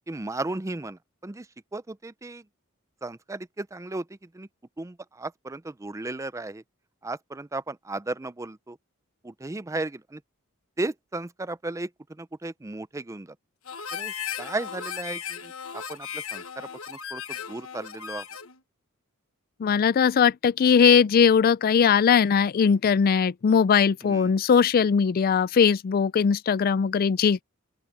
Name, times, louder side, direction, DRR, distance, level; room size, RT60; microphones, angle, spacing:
voice 1, 0.1-1.5 1.7-2.4 3.0-4.5 4.8-6.6 7.0-8.8 9.2-10.2 10.8-13.4 13.9-18.2 24.0-24.3, right 2 dB, 15° right, 0.5 m, -35 dB
Harmonica, 13.6-18.6, left 8 dB, 75° left, 1.3 m, -36 dB
voice 2, 19.6-27.4, left 6 dB, 45° left, 0.3 m, -20 dB
open air
head